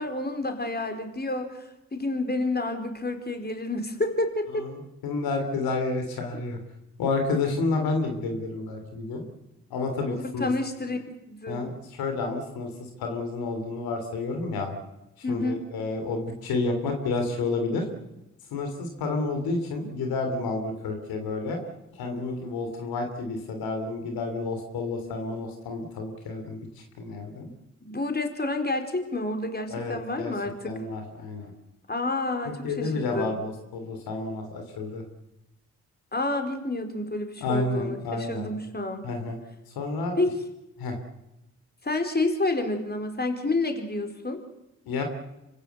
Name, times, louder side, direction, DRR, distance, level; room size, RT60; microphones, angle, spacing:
voice 1, 0.0-4.7 10.1-11.0 11.3-11.7 15.2-15.6 27.8-30.8 31.9-33.4 36.1-38.0 38.3-39.0 40.2-40.3 41.8-44.4, left 2 dB, 25° left, 6 dB, 4.5 m, -29 dB
voice 2, 4.5-6.6 7.0-9.2 9.7-10.5 11.5-14.7 15.3-17.8 18.5-21.6 21.9-27.5 29.7-30.3 30.6-31.5 32.4-35.0 37.4-38.5 39.0-39.4 39.7-40.2 40.8-41.0 44.8-45.0, left 3 dB, 85° left, 5 dB, 3.3 m, -30 dB
26.0 x 15.5 x 8.3 m, 0.92 s
supercardioid pair, 50°, 35 cm